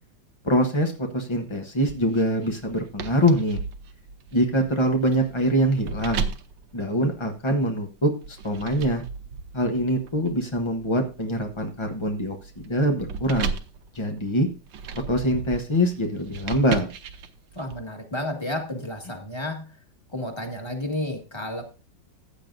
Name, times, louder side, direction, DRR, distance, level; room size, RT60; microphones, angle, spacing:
voice 1, 0.4-3.6 4.3-6.3 6.7-9.0 9.5-13.5 13.9-14.5 14.9-16.9, equal, 35° left, 3 dB, 0.4 m, -24 dB
sound 1, 1.8-7.6 8.2-17.8, right 6 dB, 70° right, 1.5 m, -36 dB
voice 2, 17.5-19.7 20.1-21.6, left 1 dB, 15° left, 3 dB, 1.7 m, -31 dB
15.0 x 9.1 x 2.6 m, 0.33 s
omnidirectional pair, 2.2 m